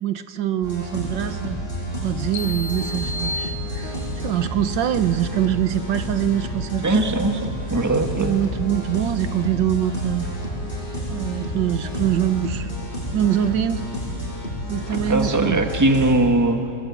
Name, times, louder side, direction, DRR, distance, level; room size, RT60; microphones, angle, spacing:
voice 1, 0.0-1.6 2.0-3.9 4.2-7.0 8.2-10.3 11.0-12.7 13.1-13.9 14.7-15.6, right 11 dB, 80° right, 11 dB, 1.6 m, -24 dB
sound 1, 0.6-16.1, equal, 30° left, 8.0 m, -30 dB
sound 2, 2.3-4.3, left 2 dB, 85° left, 2.0 m, -32 dB
voice 2, 6.8-7.4 7.7-8.3 15.1-16.6, right 2 dB, 10° right, 5 dB, 1.3 m, -20 dB
28.0 x 21.5 x 8.5 m, 2.6 s
omnidirectional pair, 2.0 m